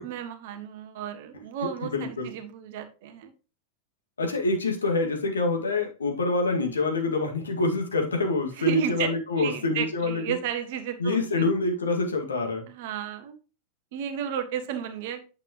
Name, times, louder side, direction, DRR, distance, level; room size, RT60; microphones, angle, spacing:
voice 1, 0.0-3.3 8.5-11.5 12.7-13.4 13.9-15.2, right 8 dB, 50° right, 7 dB, 1.5 m, -32 dB
voice 2, 1.8-2.3 4.2-10.4 11.0-12.7, left 3 dB, 70° left, 2 dB, 2.0 m, -26 dB
9.0 x 6.9 x 3.0 m, 0.34 s
figure-of-eight pair, 90°, 0 cm